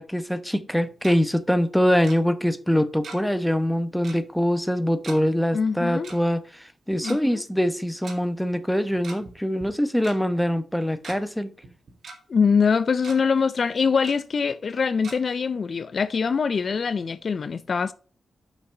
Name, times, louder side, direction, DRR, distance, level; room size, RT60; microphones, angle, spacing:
voice 1, 0.0-11.5, equal, 5° left, 0.9 m, -24 dB
Tick-tock, 0.7-1.2 2.0-2.2 3.0-3.4 3.6-3.7 4.0-4.2 5.0-5.2 6.0-6.2 6.9-7.2 8.0-8.2 8.9-9.3 9.6-9.7 10.0-10.2 10.7-11.2 11.6-12.2 12.6-12.7 13.0-13.2 14.0-14.2 15.0-15.1, right 4 dB, 65° right, 2.0 m, -40 dB
voice 2, 5.5-6.1 7.0-7.4 12.3-17.9, left 5 dB, 55° left, 0.4 m, -23 dB
5.9 x 5.7 x 5.4 m
cardioid pair, 60°, 0 cm